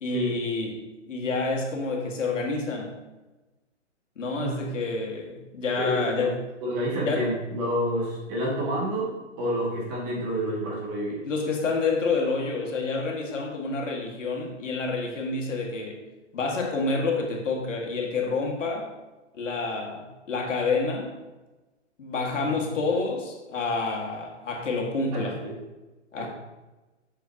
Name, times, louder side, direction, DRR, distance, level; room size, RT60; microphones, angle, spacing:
voice 1, 0.0-3.0 4.2-6.3 7.0-7.3 11.2-16.0 16.3-18.9 19.3-21.1 22.0-25.4 26.1-26.3, left 3 dB, 80° left, 0 dB, 1.9 m, -28 dB
voice 2, 5.8-6.3 6.6-9.1 9.4-11.2 22.4-22.6 25.1-25.5 26.2-26.3, equal, 25° right, -4 dB, 2.0 m, -29 dB
7.8 x 6.2 x 2.8 m, 1.1 s
hypercardioid pair, 150°, 36 cm